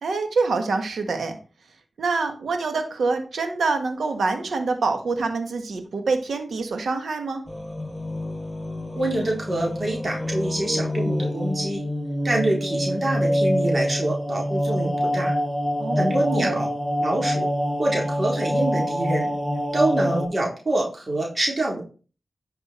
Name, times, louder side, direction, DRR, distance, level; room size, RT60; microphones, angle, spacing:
voice 1, 0.0-1.4 2.0-7.4 15.8-16.6, right 4 dB, 85° right, 6 dB, 1.6 m, -26 dB
sound 1, 7.5-20.3, equal, 15° left, 6.1 m, -26 dB
voice 2, 9.0-11.8 12.2-15.3 16.0-16.7 17.0-17.5 17.8-19.3 19.7-21.8, right 1 dB, 50° right, -1 dB, 3.7 m, -25 dB
11.0 x 6.0 x 4.4 m, 0.36 s
cardioid pair, 50°, 0 cm